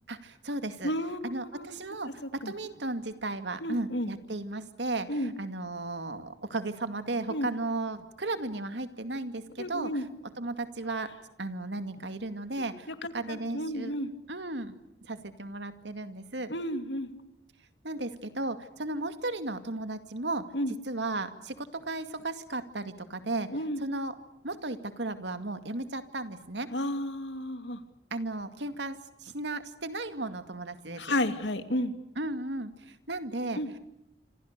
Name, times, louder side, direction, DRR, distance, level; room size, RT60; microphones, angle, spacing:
voice 1, 0.1-0.9 1.2-9.9 10.4-11.1 11.4-12.9 13.1-13.9 14.3-16.5 17.8-20.5 20.9-23.5 23.8-24.1 24.4-26.7 28.1-31.1 32.2-33.6, right 2 dB, 80° right, 9 dB, 2.3 m, -35 dB
voice 2, 0.8-1.8 2.2-2.5 3.6-4.1 5.1-5.3 7.3-7.5 9.6-10.1 12.9-14.1 16.5-17.1 20.5-20.7 23.5-23.8 26.7-27.8 31.0-31.9 33.6-33.7, left 1 dB, 80° left, 9 dB, 2.5 m, -32 dB
27.0 x 26.5 x 6.8 m, 0.84 s
head